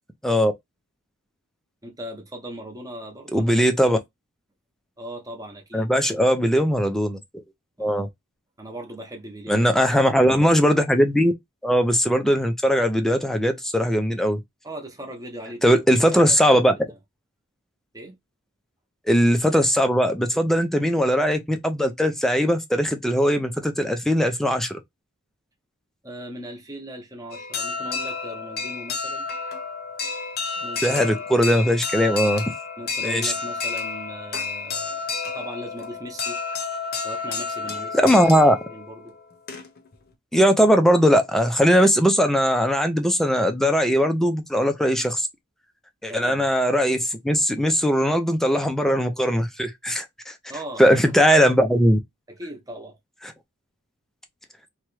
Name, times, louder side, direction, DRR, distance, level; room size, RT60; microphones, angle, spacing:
voice 1, 1.8-4.0 5.0-6.3 7.8-8.1 8.6-9.7 14.6-15.8 16.1-16.6 16.9-17.0 17.9-18.2 26.0-29.3 30.6-31.2 32.8-35.1 35.3-36.4 37.0-39.2 46.1-46.4 50.5-51.1 52.3-53.0, equal, 15° right, 0.9 m, -39 dB
voice 2, 3.3-4.0 5.7-7.2 7.8-8.1 9.5-11.3 11.6-14.4 15.6-16.7 19.1-24.8 30.8-32.5 33.0-33.3 37.9-38.6 40.3-45.3 46.0-50.3 50.8-52.0, equal, ahead, 0.5 m, -19 dB
sound 1, 27.3-39.9, left 4 dB, 45° left, 0.8 m, -31 dB
3.0 x 2.3 x 3.1 m
head